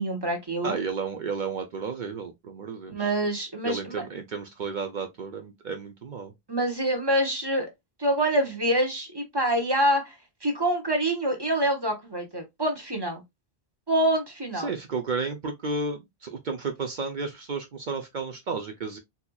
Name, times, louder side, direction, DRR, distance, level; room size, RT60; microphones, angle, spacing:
voice 1, 0.0-0.8 2.9-4.0 6.5-7.7 8.0-10.1 10.4-13.2 13.9-14.7, right 1 dB, 25° right, 0.9 m, -26 dB
voice 2, 0.6-3.1 3.6-6.3 14.6-19.0, right 4 dB, 55° right, 0.7 m, -32 dB
4.2 x 2.7 x 2.2 m
omnidirectional pair, 1.1 m